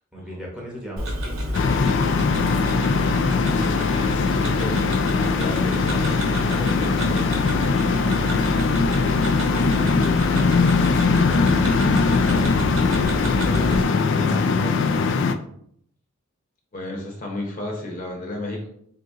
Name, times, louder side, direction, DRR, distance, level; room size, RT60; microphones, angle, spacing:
voice 1, 0.0-2.7 5.6-8.7 9.3-10.7 11.3-15.3, equal, 5° right, -4 dB, 0.9 m, -39 dB
Tick-tock, 1.0-13.8, right 1 dB, 75° right, 0.9 m, -29 dB
sound 1, 1.5-15.3, left 4 dB, 60° left, 0.3 m, -21 dB
voice 2, 4.0-4.8 5.3-5.8 16.7-18.7, left 1 dB, 40° left, 0 dB, 0.9 m, -33 dB
3.9 x 2.8 x 3.5 m, 0.67 s
head